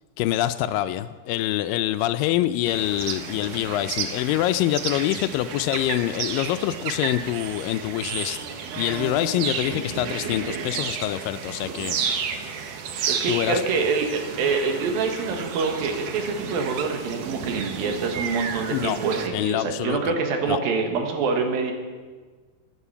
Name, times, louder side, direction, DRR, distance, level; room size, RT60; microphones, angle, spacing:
voice 1, 0.2-12.3 13.3-13.6 18.7-19.0 19.3-20.1 20.5-20.6, left 14 dB, 80° left, 12 dB, 2.2 m, -25 dB
sound 1, 2.7-19.3, right 6 dB, 70° right, 1.7 m, -32 dB
voice 2, 13.1-21.7, right 4 dB, 85° right, 4 dB, 3.2 m, -26 dB
15.5 x 9.6 x 5.7 m, 1.5 s
omnidirectional pair, 4.1 m